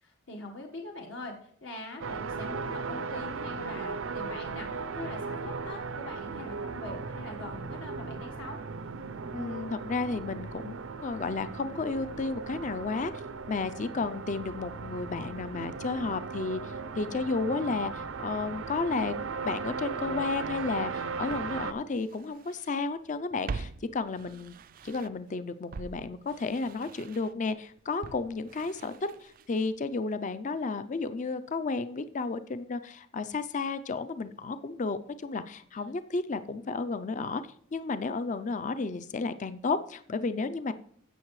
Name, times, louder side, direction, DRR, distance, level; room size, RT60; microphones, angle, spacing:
voice 1, 0.0-8.6 35.7-35.8, left 2 dB, 70° left, 1 dB, 1.5 m, -43 dB
sound 1, 2.0-21.7, right 4 dB, 85° right, 0.6 m, -37 dB
voice 2, 9.3-13.1 13.5-19.1 19.4-24.5 24.8-28.9 29.2-37.4 37.7-40.7, left 4 dB, 40° left, 12 dB, 0.5 m, -32 dB
Walk footsteps, 20.6-20.7 21.3-22.8 23.1-25.3 25.7-29.8 30.0-30.1, right 4 dB, 45° right, 0.4 m, -44 dB
16.0 x 6.6 x 3.2 m, 0.63 s
head